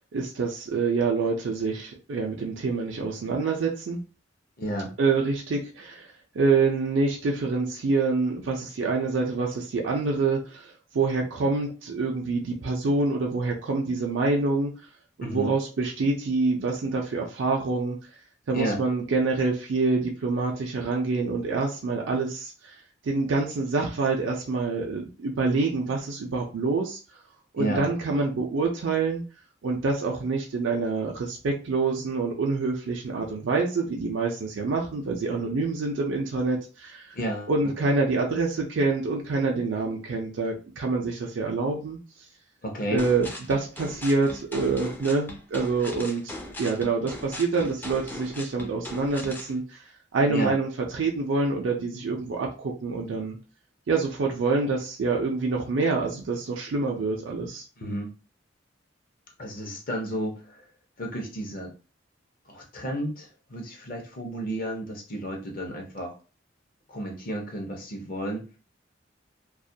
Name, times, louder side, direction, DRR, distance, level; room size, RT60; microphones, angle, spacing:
voice 1, 0.1-4.0 5.0-6.1 6.3-14.7 15.2-18.0 18.5-22.8 23.0-27.0 27.5-29.2 29.6-37.1 37.5-42.0 42.9-49.8 50.1-50.7 50.9-53.4 53.9-57.6, right 3 dB, 85° right, 0 dB, 0.4 m, -26 dB
voice 2, 4.6-4.9 15.2-15.5 18.5-18.8 27.6-27.9 37.1-37.5 42.6-43.1 50.3-50.5 57.8-58.1 59.4-60.6 61.0-61.7 62.5-66.1 66.9-68.5, right 1 dB, 50° left, 2 dB, 0.6 m, -32 dB
sound 1, 43.0-49.5, left 1 dB, 10° left, 0.3 m, -39 dB
2.3 x 2.1 x 2.6 m, 0.34 s
head